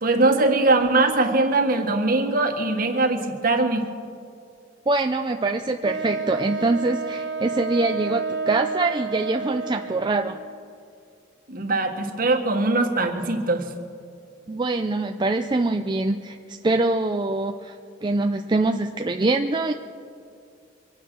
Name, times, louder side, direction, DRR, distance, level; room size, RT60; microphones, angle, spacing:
voice 1, 0.0-3.9 11.5-13.7, right 2 dB, 50° right, 4 dB, 1.6 m, -21 dB
voice 2, 4.9-10.4 14.5-16.4 16.6-17.8 18.0-19.7, right 2 dB, 25° right, 5 dB, 0.5 m, -24 dB
Wind instrument woodwind instrument, 5.8-10.3, right 4 dB, 70° right, 0.9 m, -30 dB
24.0 x 9.1 x 6.2 m, 2.4 s
head